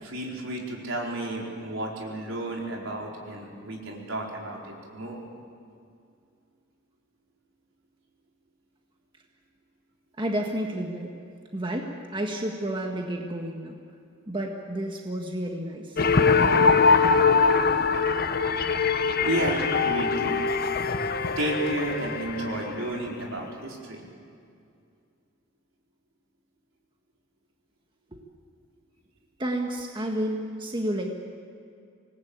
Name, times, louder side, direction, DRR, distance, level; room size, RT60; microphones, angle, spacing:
voice 1, 0.0-5.2 19.2-20.4 21.4-24.1, right 1 dB, 75° right, -1 dB, 4.7 m, -32 dB
voice 2, 10.2-11.1 11.5-13.8 14.3-16.0 28.1-28.2 29.4-31.1, right 1 dB, 25° right, 1 dB, 1.7 m, -31 dB
sound 1, 16.0-22.9, left 4 dB, 50° left, 1.0 m, -22 dB
26.0 x 19.5 x 8.8 m, 2.4 s
head